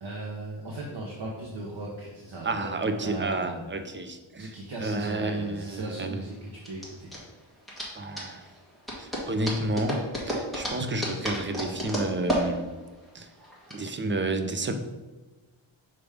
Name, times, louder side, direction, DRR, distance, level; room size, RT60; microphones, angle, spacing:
voice 1, 0.0-3.6 4.4-7.1, right 2 dB, 60° right, -3 dB, 1.0 m, -37 dB
voice 2, 2.4-4.5 4.8-6.3 8.0-8.5 9.0-12.7 13.1-13.3 13.7-14.7, right 2 dB, 25° right, 7 dB, 0.5 m, -30 dB
sound 1, 5.0-13.7, equal, ahead, 1.6 m, -33 dB
6.0 x 3.4 x 4.9 m, 1.2 s
wide cardioid pair, 130°, 48 cm